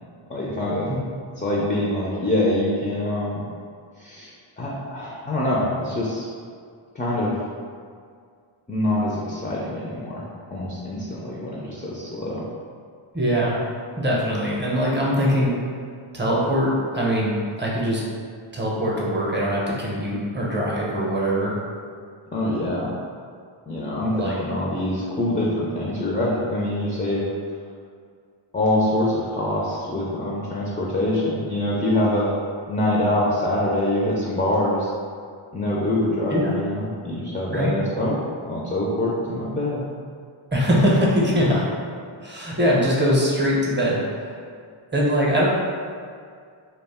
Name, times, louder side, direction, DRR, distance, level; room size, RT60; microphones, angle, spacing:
voice 1, 0.3-0.9 1.4-3.4 4.0-6.3 6.9-7.3 8.7-10.2 10.5-12.4 22.3-22.9 23.7-27.2 28.5-32.3 32.7-34.9 35.5-38.2 38.4-39.8, left 1 dB, 20° left, -5 dB, 0.3 m, -24 dB
voice 2, 13.1-13.6 14.0-15.5 16.1-18.0 18.5-21.5 24.1-24.3 36.3-36.5 37.5-37.7 40.5-41.7 42.2-44.4 44.9-45.5, equal, 20° right, -5 dB, 0.6 m, -22 dB
2.3 x 2.1 x 3.4 m, 2.1 s
wide cardioid pair, 45°, 50 cm